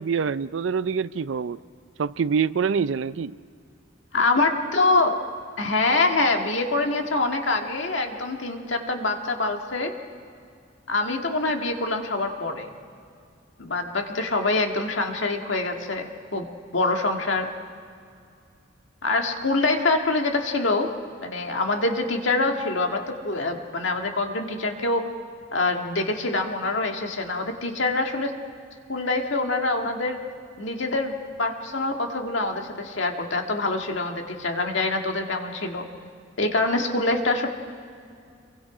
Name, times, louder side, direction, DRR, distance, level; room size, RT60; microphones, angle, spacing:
voice 1, 0.0-1.6 2.0-3.3, right 6 dB, 80° right, 0.5 m, -25 dB
voice 2, 4.1-5.2 5.6-9.9 10.9-12.7 13.6-16.4 16.7-17.5 19.0-20.9 21.2-25.1 25.5-28.3 28.9-30.2 30.6-35.9 36.4-37.5, left 2 dB, 75° left, 1.9 m, -25 dB
27.5 x 23.0 x 5.0 m
head